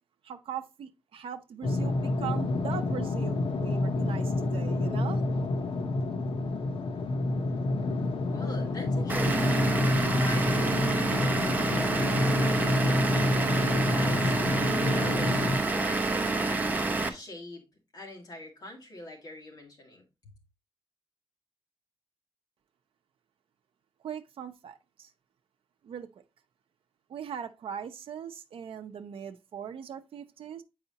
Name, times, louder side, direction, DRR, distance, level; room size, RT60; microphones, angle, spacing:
voice 1, 0.2-5.2 24.0-25.1 25.8-26.1 27.1-30.6, right 8 dB, 85° right, 0.5 m, -40 dB
sound 1, 1.6-15.6, left 2 dB, 80° left, 0.9 m, -28 dB
voice 2, 8.2-9.7 10.1-11.9 12.4-14.4 14.7-16.7 17.1-17.6 17.9-20.0, left 1 dB, 45° left, 2.1 m, -43 dB
Vehicle / Engine, 9.1-17.1, right 3 dB, 20° right, 0.7 m, -28 dB
7.9 x 4.8 x 2.8 m
wide cardioid pair, 175°, 9 cm